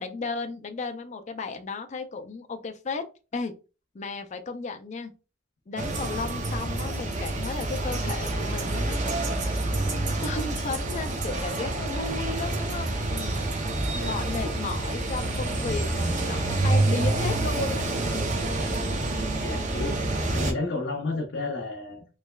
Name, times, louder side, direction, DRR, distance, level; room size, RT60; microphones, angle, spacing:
voice 1, 0.0-3.0 3.3-3.5 3.9-5.1 5.7-13.5 14.0-17.9 18.1-18.5, left 3 dB, 40° left, 0.4 m, -34 dB
sound 1, 5.8-20.5, right 2 dB, 40° right, 0.6 m, -28 dB
voice 2, 19.4-20.0 20.3-22.0, left 2 dB, 75° left, 0.7 m, -32 dB
3.3 x 3.0 x 2.3 m
head